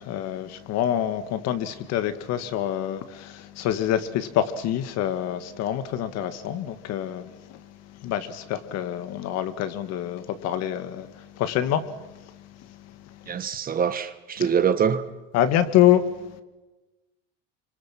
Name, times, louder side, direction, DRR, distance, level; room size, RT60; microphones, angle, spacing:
voice 1, 0.0-7.6 8.0-11.9 15.3-16.0, left 11 dB, 55° left, 1.9 m, -26 dB
voice 2, 13.3-15.1, right 7 dB, 30° right, 1.2 m, -24 dB
27.5 x 25.5 x 6.0 m
cardioid pair, 140°, 31 cm